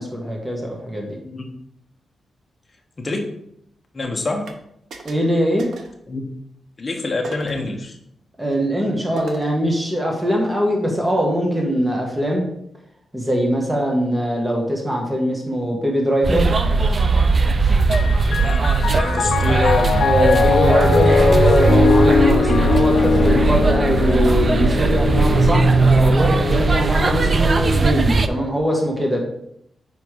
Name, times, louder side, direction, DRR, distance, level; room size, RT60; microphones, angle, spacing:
voice 1, 0.0-1.2 5.0-5.7 8.4-12.4 13.1-16.5 19.0-19.4 20.0-29.2, equal, 10° right, -1 dB, 1.4 m, -22 dB
voice 2, 3.9-4.5 6.1-6.3 6.8-8.0 18.4-18.7 18.9-20.0, left 3 dB, 25° left, 1 dB, 1.3 m, -25 dB
sound 1, 4.4-4.6 4.9-5.3 5.6-6.0 7.2-7.7 9.2-9.6, right 3 dB, 85° right, 1.0 m, -37 dB
sound 2, 16.2-28.3, right 4 dB, 30° right, 0.4 m, -18 dB
Piano, 17.8-27.4, left 5 dB, 70° left, 0.4 m, -21 dB
6.9 x 5.1 x 4.8 m, 0.75 s
wide cardioid pair, 160°, 0 cm